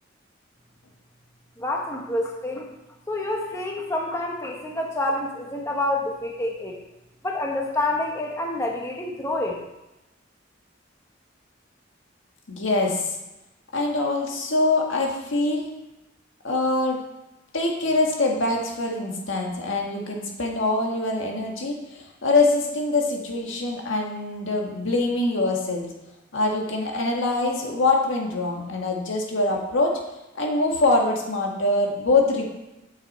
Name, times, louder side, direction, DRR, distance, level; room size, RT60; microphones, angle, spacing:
voice 1, 1.6-2.7 3.1-6.7 7.2-9.6, left 1 dB, 15° left, 0 dB, 1.0 m, -27 dB
voice 2, 12.5-13.0 13.7-15.7 16.4-17.0 17.5-25.9 26.3-29.9 30.4-32.5, left 2 dB, 90° left, 0 dB, 1.7 m, -24 dB
9.4 x 6.5 x 4.2 m, 0.96 s
head